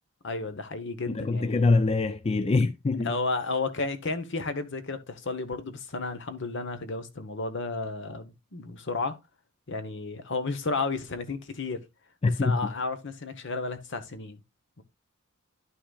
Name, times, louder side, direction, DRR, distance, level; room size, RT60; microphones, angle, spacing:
voice 1, 0.2-1.6 3.0-9.2 9.7-11.8 12.3-14.4 14.8-14.9, left 3 dB, 65° left, 1.0 m, -32 dB
voice 2, 1.1-3.1 12.2-12.6, left 3 dB, 30° left, 0.4 m, -24 dB
11.5 x 5.7 x 2.4 m
head